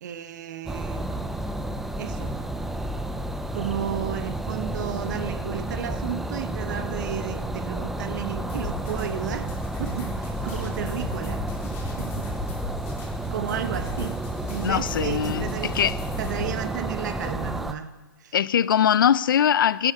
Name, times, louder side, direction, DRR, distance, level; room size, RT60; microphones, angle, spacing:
voice 1, 0.0-1.2 2.0-2.4 3.5-12.3 13.3-14.2 14.5-15.7 16.2-18.4, right 9 dB, 55° right, 1.1 m, -33 dB
sound 1, 0.7-17.7, right 1 dB, ahead, 0.4 m, -31 dB
sound 2, 8.5-16.5, left 3 dB, 25° left, 2.5 m, -37 dB
voice 2, 14.6-16.0 18.3-19.9, left 9 dB, 70° left, 0.5 m, -21 dB
16.0 x 10.5 x 3.6 m
hypercardioid pair, 150°, 12 cm